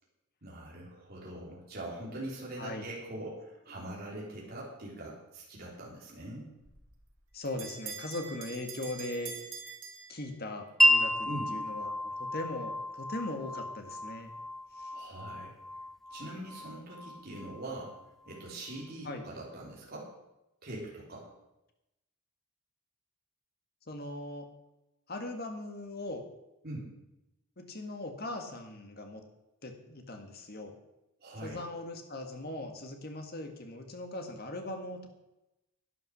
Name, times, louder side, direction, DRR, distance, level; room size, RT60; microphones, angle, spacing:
voice 1, 0.4-6.5 11.2-11.5 14.9-15.5 16.1-17.9 18.2-20.1 20.6-21.3 26.6-26.9 31.2-31.6, right 1 dB, 45° right, -4 dB, 3.3 m, -42 dB
Bell, 6.6-10.7, right 6 dB, 65° right, 2.6 m, -45 dB
voice 2, 7.3-9.3 10.1-14.3 14.8-14.9 19.0-19.3 23.9-24.5 25.1-26.2 27.6-29.2 29.6-30.7 31.4-35.1, left 2 dB, 45° left, 5 dB, 1.7 m, -39 dB
Wind chime, 10.8-18.4, equal, ahead, 0.6 m, -32 dB
11.5 x 9.3 x 6.4 m, 0.93 s
head